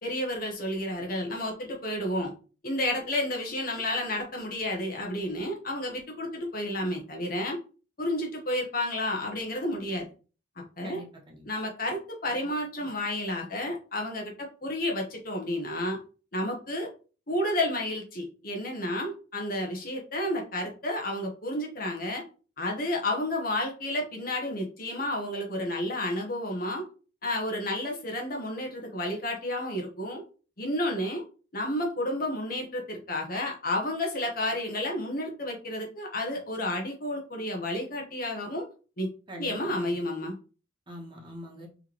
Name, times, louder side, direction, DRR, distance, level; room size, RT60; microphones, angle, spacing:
voice 1, 0.0-2.3 2.6-7.6 8.0-10.1 10.8-11.0 11.4-16.0 16.3-16.9 17.3-22.2 22.6-26.9 27.2-30.2 30.6-31.2 31.5-38.7 39.0-39.1 39.4-40.4, left 1 dB, 50° left, 1 dB, 1.2 m, -31 dB
voice 2, 10.8-11.4 39.3-40.0 40.9-41.7, equal, 25° right, -1 dB, 1.1 m, -43 dB
4.7 x 3.3 x 3.0 m, 0.36 s
head